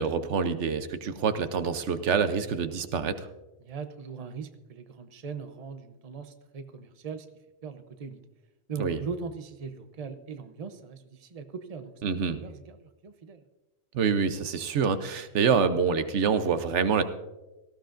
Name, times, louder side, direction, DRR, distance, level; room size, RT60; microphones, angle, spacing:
voice 1, 0.0-3.3 8.8-9.0 12.0-12.4 13.9-17.0, right 6 dB, 85° right, 11 dB, 1.1 m, -26 dB
voice 2, 3.6-7.3 7.6-8.2 8.7-11.9 12.4-13.4, right 5 dB, 35° right, 9 dB, 0.8 m, -40 dB
18.5 x 14.5 x 2.6 m, 1.1 s
omnidirectional pair, 1.2 m